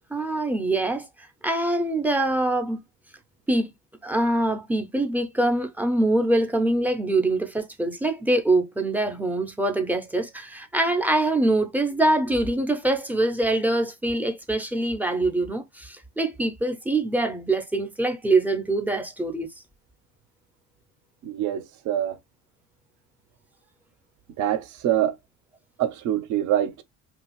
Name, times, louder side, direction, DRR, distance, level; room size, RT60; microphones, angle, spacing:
voice 1, 0.1-1.1 1.4-2.8 3.5-3.7 4.0-19.5, right 2 dB, 5° right, 0.5 m, -24 dB
voice 2, 21.2-22.2 24.4-25.2 25.8-26.8, right 11 dB, 55° right, 0.6 m, -25 dB
2.8 x 2.4 x 2.9 m
supercardioid pair, 100°, 35 cm